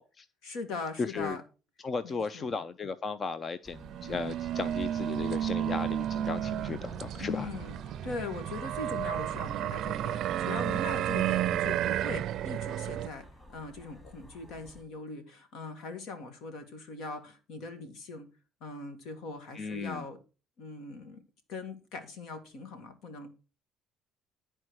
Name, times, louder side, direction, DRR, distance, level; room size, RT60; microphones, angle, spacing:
voice 1, 0.4-1.4 2.0-2.5 7.2-7.8 8.0-18.3 18.6-20.2 20.6-21.2 21.5-23.3, left 3 dB, 70° left, 8 dB, 2.1 m, -41 dB
voice 2, 1.0-1.4 1.8-7.5 19.5-20.0, left 4 dB, 30° left, 14 dB, 0.5 m, -35 dB
sound 1, 3.6-14.8, left 1 dB, 10° left, 4.2 m, -53 dB
sound 2, 3.7-13.1, right 11 dB, 60° right, 0.4 m, -32 dB
11.0 x 4.4 x 6.3 m, 0.33 s
cardioid pair, 125°, 0 cm